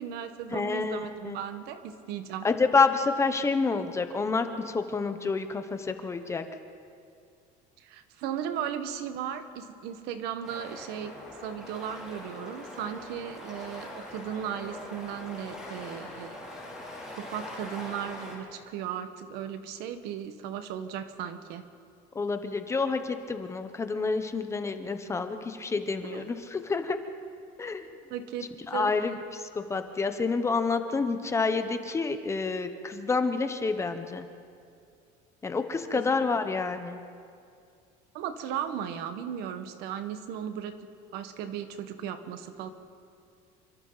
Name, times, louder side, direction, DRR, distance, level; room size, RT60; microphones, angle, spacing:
voice 1, 0.0-2.5 7.8-11.1 11.4-16.4 17.1-21.6 26.0-26.3 28.1-28.5 28.7-29.0 35.9-36.2 38.1-40.8 41.1-42.7, right 9 dB, 65° right, 9 dB, 1.5 m, -36 dB
voice 2, 0.5-1.4 2.4-6.4 22.2-27.0 27.6-27.8 28.7-29.2 29.5-34.2 35.4-37.0, left 4 dB, 15° left, 8 dB, 0.8 m, -28 dB
sound 1, 10.4-18.4, left 1 dB, 5° right, 5.7 m, -42 dB
27.5 x 24.5 x 4.0 m, 2.4 s
cardioid pair, 165°, 18 cm